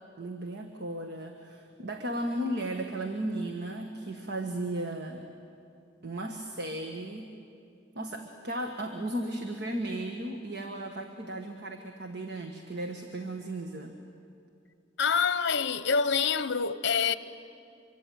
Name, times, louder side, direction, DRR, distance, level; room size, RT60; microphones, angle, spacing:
voice 1, 0.2-5.2 6.0-7.3 7.9-13.9, right 1 dB, 60° right, 1.6 m, -35 dB
voice 2, 15.0-17.1, left 6 dB, 60° left, 0.9 m, -26 dB
26.0 x 23.5 x 9.2 m
head